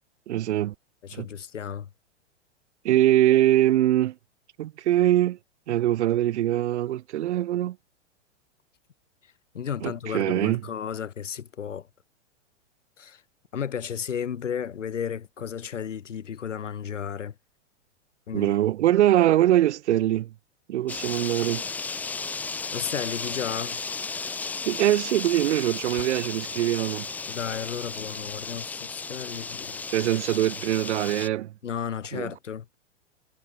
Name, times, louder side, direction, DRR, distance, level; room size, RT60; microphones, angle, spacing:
voice 1, 0.3-0.7 1.1-1.3 2.8-4.1 4.6-5.4 5.7-7.8 9.8-10.6 18.3-20.3 20.7-21.6 24.7-27.1 29.9-31.5 32.1-32.3, right 13 dB, 70° right, 0.6 m, -23 dB
voice 2, 1.0-1.9 9.5-11.9 13.0-13.2 13.5-17.3 18.3-18.5 22.7-23.8 27.3-29.8 31.6-32.6, left 8 dB, 85° left, 1.0 m, -33 dB
sound 1, 20.9-31.3, left 4 dB, 5° left, 0.3 m, -34 dB
hypercardioid pair, 105°, 36 cm